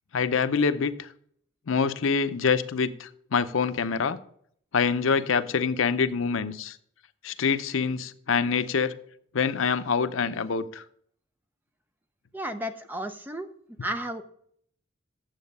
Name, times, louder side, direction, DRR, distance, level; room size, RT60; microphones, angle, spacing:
voice 1, 0.1-1.1 1.7-4.2 4.7-6.8 7.2-8.9 9.3-10.8, left 5 dB, 80° left, 12 dB, 0.6 m, -25 dB
voice 2, 12.3-13.5 13.8-14.2, right 1 dB, 10° right, 7 dB, 0.5 m, -33 dB
9.1 x 7.3 x 5.3 m, 0.65 s
head